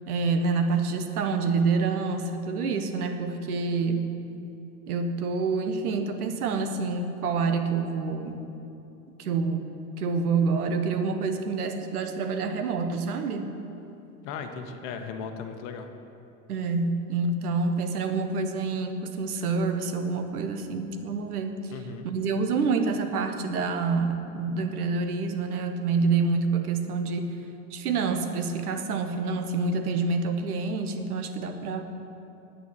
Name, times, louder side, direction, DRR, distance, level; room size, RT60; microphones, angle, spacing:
voice 1, 0.1-4.1 4.9-8.4 9.2-9.6 10.0-13.5 16.5-21.7 22.0-27.3 27.7-31.8, right 4 dB, 80° right, 7 dB, 1.0 m, -27 dB
voice 2, 14.2-15.9 21.7-22.1, left 5 dB, 50° left, 6 dB, 1.0 m, -37 dB
9.0 x 7.0 x 6.2 m, 2.8 s
hypercardioid pair, 90°, 45 cm